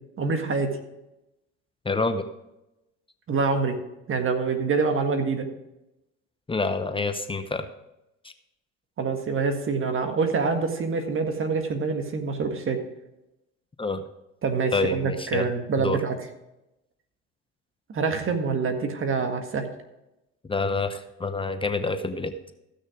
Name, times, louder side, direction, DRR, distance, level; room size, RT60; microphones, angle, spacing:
voice 1, 0.2-0.8 3.3-3.8 4.1-5.5 9.0-12.8 14.4-16.2 17.9-19.7, right 4 dB, 40° right, 5 dB, 1.8 m, -26 dB
voice 2, 1.8-2.2 6.5-7.7 13.8-14.0 14.7-15.5 15.8-16.0 20.5-22.3, left 3 dB, 15° left, 9 dB, 0.8 m, -27 dB
15.0 x 6.3 x 5.0 m, 0.92 s
hypercardioid pair, 70°, 33 cm